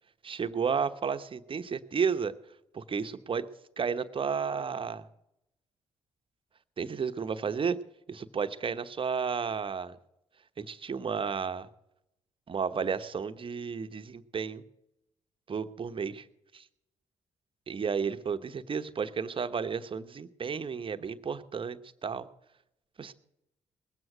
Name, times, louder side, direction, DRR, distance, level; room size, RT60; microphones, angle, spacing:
voice 1, 0.2-2.3 2.7-3.5 3.8-5.1 6.8-7.8 8.1-10.0 10.6-11.7 12.5-14.6 15.5-16.3 16.5-16.7 17.7-22.3 23.0-23.1, right 6 dB, 40° right, 10 dB, 1.0 m, -32 dB
20.0 x 7.9 x 6.1 m, 0.84 s
supercardioid pair, 55°, 13 cm